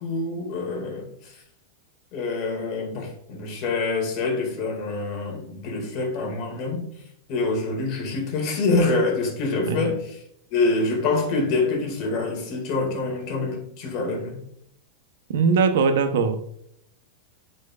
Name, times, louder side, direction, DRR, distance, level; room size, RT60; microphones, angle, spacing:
voice 1, 0.0-1.4 2.1-6.9 7.3-10.1 10.5-14.4, left 3 dB, 45° left, 1.9 m, -26 dB
voice 2, 9.7-10.0 15.3-16.4, right 5 dB, 75° right, 0.7 m, -21 dB
9.6 x 4.5 x 2.4 m
supercardioid pair, 150°, 0 cm